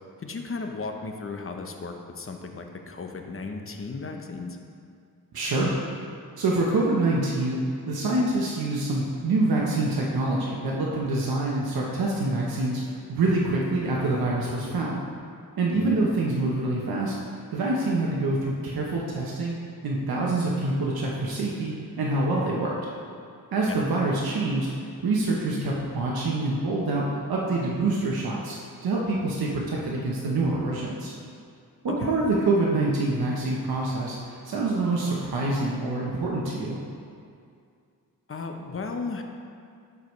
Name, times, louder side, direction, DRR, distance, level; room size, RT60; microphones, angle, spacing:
voice 1, 0.2-4.6 15.7-16.0 23.7-23.8 31.9-32.2 38.3-39.2, left 4 dB, 35° left, 3 dB, 0.8 m, -35 dB
voice 2, 5.3-5.7 6.4-7.6 7.9-12.8 13.1-15.0 15.6-17.2 17.5-19.6 19.8-22.7 23.5-24.7 25.0-28.6 28.8-31.1 31.8-36.8, right 2 dB, 85° right, -4 dB, 0.9 m, -26 dB
12.0 x 4.8 x 3.1 m, 2.3 s
cardioid pair, 70°, 36 cm